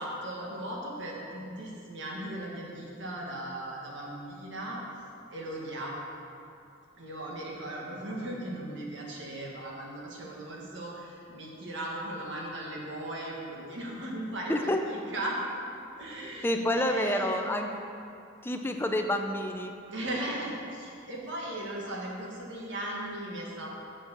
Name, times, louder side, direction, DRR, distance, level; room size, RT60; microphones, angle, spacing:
voice 1, 0.0-4.8 5.3-6.0 7.0-15.4 16.0-17.4 19.9-23.8, right 1 dB, 65° right, -3 dB, 1.8 m, -37 dB
voice 2, 14.5-14.8 16.4-17.7 18.4-19.7, left 1 dB, 10° left, 4 dB, 0.5 m, -28 dB
7.4 x 5.6 x 7.2 m, 2.6 s
head